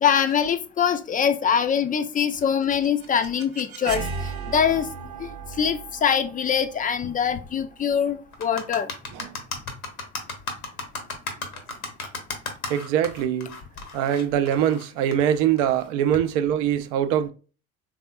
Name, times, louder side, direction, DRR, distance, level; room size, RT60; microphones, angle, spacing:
voice 1, 0.0-4.1 4.5-4.9 5.2-5.3 5.6-8.9, left 7 dB, 20° left, 0.4 m, -23 dB
sound 1, 2.4-8.3, right 5 dB, 80° right, 0.9 m, -37 dB
sound 2, 8.3-15.9, left 3 dB, 85° left, 1.0 m, -34 dB
voice 2, 12.7-13.6 13.9-17.3, right 10 dB, 60° right, 0.6 m, -23 dB
4.2 x 3.5 x 2.2 m
figure-of-eight pair, 65°, 42 cm